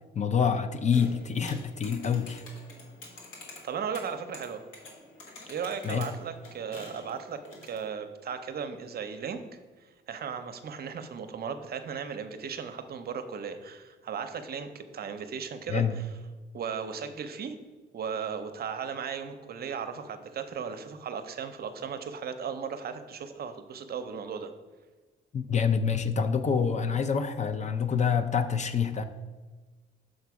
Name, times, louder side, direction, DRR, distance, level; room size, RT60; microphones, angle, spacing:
voice 1, 0.2-2.4 5.8-6.1 15.7-16.0 25.3-29.0, left 6 dB, 35° left, 9 dB, 0.4 m, -27 dB
sound 1, 0.9-7.9, left 2 dB, 80° left, 1.4 m, -48 dB
voice 2, 3.6-4.6 5.5-9.4 10.1-16.1 16.5-17.6 17.9-24.5, right 6 dB, 50° right, 8 dB, 0.7 m, -36 dB
6.5 x 4.0 x 4.7 m, 1.3 s
cardioid pair, 90°, 20 cm